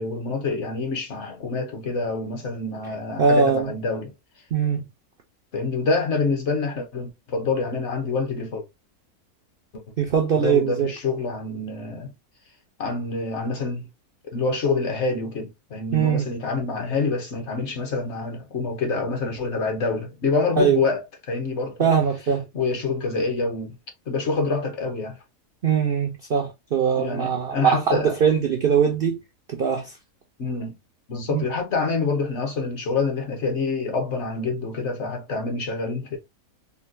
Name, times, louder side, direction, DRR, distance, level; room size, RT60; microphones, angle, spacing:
voice 1, 0.0-4.1 5.5-8.6 9.7-9.8 10.4-12.1 12.8-13.9 14.3-21.7 22.5-23.7 24.1-25.2 27.0-28.1 30.4-30.7 31.1-36.2, left 3 dB, 55° left, 0.9 m, -26 dB
voice 2, 3.2-3.7 4.5-4.8 10.0-10.9 15.9-16.3 20.6-20.8 21.8-22.4 25.6-29.2 29.5-30.0 31.3-31.4, right 7 dB, 80° right, 0.5 m, -21 dB
3.8 x 2.2 x 2.5 m
omnidirectional pair, 1.7 m